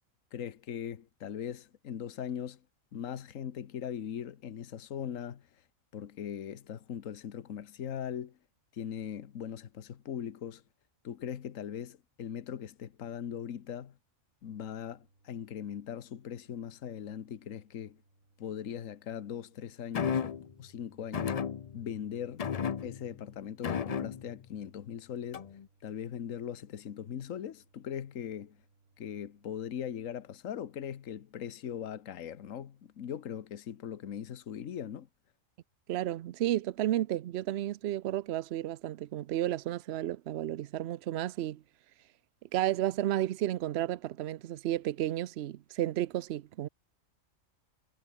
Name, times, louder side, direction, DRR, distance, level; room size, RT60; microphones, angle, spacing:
voice 1, 0.3-2.6 2.9-5.5 5.9-8.4 8.7-10.6 11.0-13.9 14.4-18.0 18.4-21.4 21.7-22.4 22.8-25.4 25.8-28.6 29.0-35.1, left 9 dB, 70° left, 1.5 m, -40 dB
sound 1, 14.5-29.8, right 3 dB, 75° right, 4.6 m, -69 dB
sound 2, 19.9-20.5 21.1-22.0 22.4-23.2 23.6-24.4 25.3-25.7, left 7 dB, 50° left, 0.4 m, -33 dB
voice 2, 35.9-41.6 42.5-46.7, right 13 dB, 60° right, 0.8 m, -32 dB
omnidirectional pair, 1.4 m